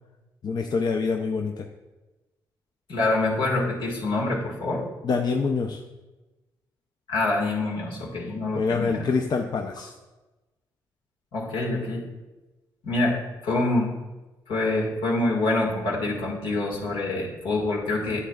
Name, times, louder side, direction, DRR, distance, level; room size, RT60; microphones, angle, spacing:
voice 1, 0.4-1.7 5.0-5.8 8.5-9.9, left 4 dB, 55° left, 4 dB, 0.6 m, -26 dB
voice 2, 2.9-4.8 7.1-9.0 11.3-12.0 12.8-13.2 13.4-13.9 14.5-18.2, left 2 dB, 75° left, -2 dB, 1.7 m, -26 dB
9.8 x 7.5 x 2.3 m, 1.1 s
supercardioid pair, 55°, 9 cm